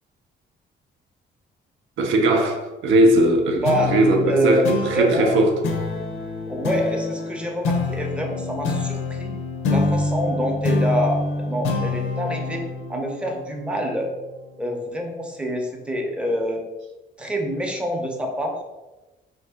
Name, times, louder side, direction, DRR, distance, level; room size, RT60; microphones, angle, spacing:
voice 1, 2.0-5.5, right 1 dB, 80° right, 3 dB, 0.5 m, -19 dB
sound 1, 3.6-14.5, left 3 dB, 80° left, 0.5 m, -26 dB
voice 2, 4.2-5.4 6.5-9.3 9.7-12.6 12.9-14.1 14.6-16.6 17.2-18.6, equal, 5° right, 1 dB, 0.5 m, -26 dB
2.6 x 2.6 x 3.5 m, 1.1 s
cardioid pair, 90°, 20 cm